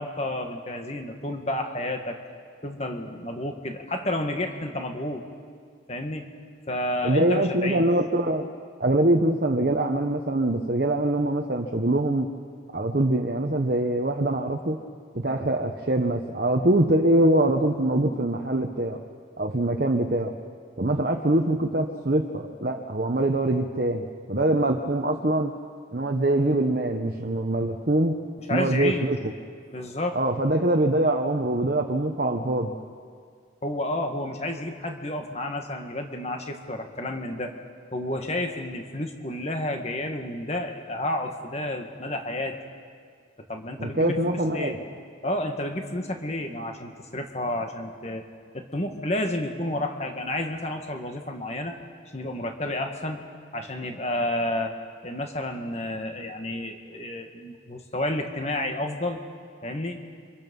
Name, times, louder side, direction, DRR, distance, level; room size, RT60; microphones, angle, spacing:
voice 1, 0.0-2.2 2.6-5.3 5.9-6.3 6.7-7.8 28.5-29.1 29.7-30.2 33.6-37.5 37.9-42.6 43.5-44.8 45.2-48.2 48.5-51.7 52.1-53.2 53.5-54.7 55.0-59.2 59.6-60.0, left 1 dB, 35° left, 4 dB, 1.9 m, -30 dB
voice 2, 7.0-8.5 8.8-12.3 12.7-14.8 15.1-19.0 19.4-20.4 20.8-25.5 25.9-28.2 28.5-29.3 30.1-32.7 43.8-44.8, right 1 dB, 50° right, 2 dB, 1.1 m, -24 dB
29.5 x 25.5 x 5.5 m, 2.1 s
head